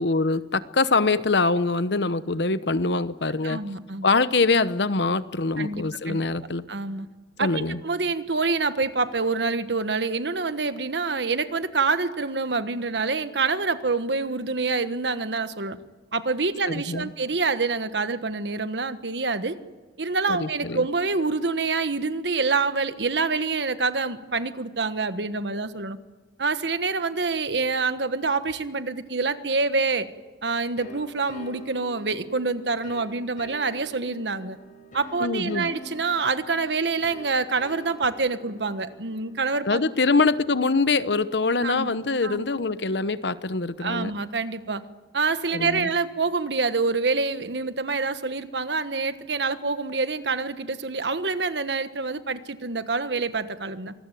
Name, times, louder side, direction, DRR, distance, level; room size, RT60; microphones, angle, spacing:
voice 1, 0.0-3.6 4.0-6.6 7.4-7.8 16.6-17.1 20.3-20.9 35.2-35.7 39.7-44.1 45.5-45.9, left 3 dB, 75° left, 14 dB, 1.0 m, -24 dB
voice 2, 3.4-4.1 5.6-6.2 6.7-7.1 7.4-15.8 16.1-19.6 20.0-26.0 26.4-30.1 30.4-34.6 34.9-39.8 41.6-41.9 42.2-42.4 43.8-44.8 45.1-53.9, right 4 dB, 75° right, 11 dB, 1.4 m, -26 dB
sound 1, 30.8-41.2, equal, 50° left, 6.3 m, -46 dB
25.0 x 20.0 x 9.3 m, 1.3 s
head